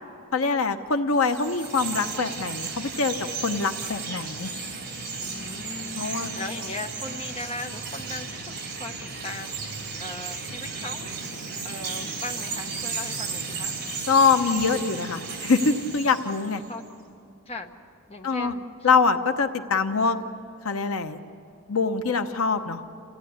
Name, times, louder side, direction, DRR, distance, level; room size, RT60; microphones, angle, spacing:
voice 1, 0.3-4.5 6.0-6.3 14.1-16.6 18.2-18.5 18.8-20.2 20.6-21.2 21.7-22.8, left 4 dB, 75° left, 7 dB, 1.0 m, -24 dB
Chirp tweet, 1.1-16.7, right 4 dB, 40° right, 4.0 m, -34 dB
voice 2, 5.2-11.1 11.6-13.7 16.0-16.3 16.7-16.8 17.5-17.7 18.1-18.6, left 2 dB, 25° left, 3 dB, 1.2 m, -39 dB
29.0 x 16.0 x 9.6 m, 2.7 s
head